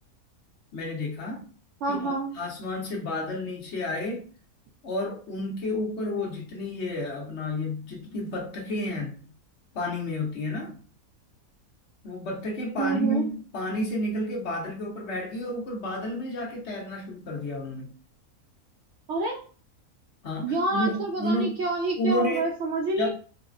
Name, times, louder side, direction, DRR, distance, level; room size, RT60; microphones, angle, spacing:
voice 1, 0.7-1.5 1.9-4.2 4.8-9.2 9.7-10.7 12.0-17.9 20.2-21.6 22.0-22.5 23.0-23.1, left 1 dB, 50° left, 1.1 m, -31 dB
voice 2, 1.8-2.3 12.8-13.3 19.1-19.4 20.4-23.1, right 3 dB, 65° right, 0.7 m, -27 dB
4.0 x 2.0 x 2.5 m
omnidirectional pair, 1.6 m